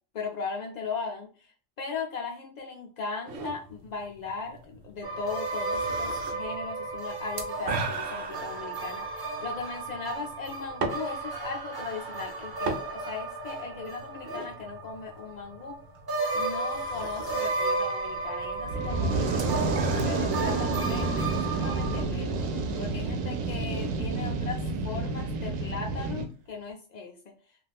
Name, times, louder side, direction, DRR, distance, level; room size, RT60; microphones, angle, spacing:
voice 1, 0.1-1.5 1.8-15.8 16.3-22.5 22.8-27.1, left 4 dB, 85° left, 0 dB, 0.3 m, -38 dB
sound 1, 3.3-23.0, right 4 dB, 65° right, 0.7 m, -41 dB
sound 2, 5.0-15.8 16.1-22.0, right 3 dB, 30° right, 0.4 m, -34 dB
Fire, 18.6-26.2, right 3 dB, 90° right, 1.0 m, -29 dB
2.4 x 2.3 x 3.4 m, 0.38 s
omnidirectional pair, 1.3 m